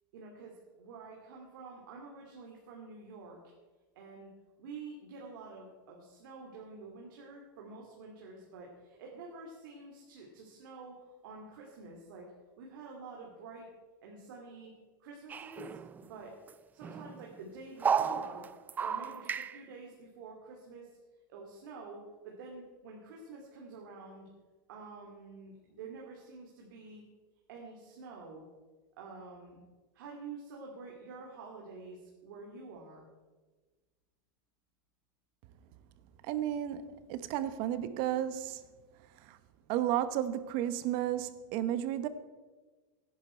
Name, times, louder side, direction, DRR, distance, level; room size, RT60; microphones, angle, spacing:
voice 1, 0.1-3.4 4.0-4.3 4.6-12.2 12.6-13.7 14.0-14.7 15.0-16.3 16.7-18.4 18.8-20.9 21.3-24.3 24.7-27.0 27.5-28.4 29.0-29.6 29.9-33.1, right 3 dB, 75° right, 2.7 m, -48 dB
sound 1, 15.3-16.2 16.5-16.6 16.8-17.3 17.8-19.6, right 7 dB, 15° right, 0.4 m, -33 dB
voice 2, 36.3-38.6 39.3-39.4 39.7-42.1, right 11 dB, 50° right, 1.0 m, -33 dB
16.5 x 10.5 x 4.5 m
supercardioid pair, 145°, 11 cm